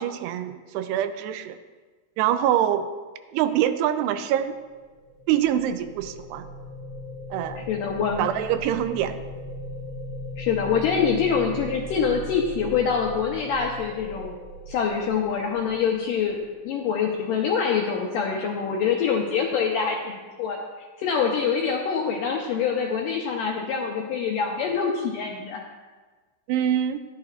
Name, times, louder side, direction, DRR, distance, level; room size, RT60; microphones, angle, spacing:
voice 1, 0.0-1.6 2.2-2.9 3.3-4.6 5.3-6.5 7.3-7.7 8.2-9.2 26.5-27.0, right 11 dB, 85° right, 11 dB, 2.7 m, -24 dB
sound 1, 4.6-16.8, equal, 5° left, 2.6 m, -38 dB
voice 2, 7.7-8.3 10.4-14.4 14.7-25.6, left 6 dB, 80° left, 0 dB, 1.9 m, -25 dB
12.5 x 10.5 x 2.5 m, 1.3 s
omnidirectional pair, 4.7 m